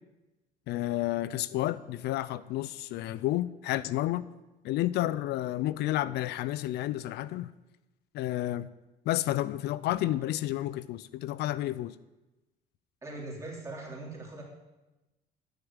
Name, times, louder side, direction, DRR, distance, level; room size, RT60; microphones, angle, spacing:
voice 1, 0.7-4.2 4.6-7.5 8.1-8.7 9.1-12.0, left 15 dB, 75° left, 17 dB, 0.4 m, -31 dB
voice 2, 13.0-14.4, right 2 dB, 20° right, -2 dB, 3.5 m, -41 dB
9.5 x 6.8 x 8.8 m, 1.1 s
cardioid pair, 110°, 17 cm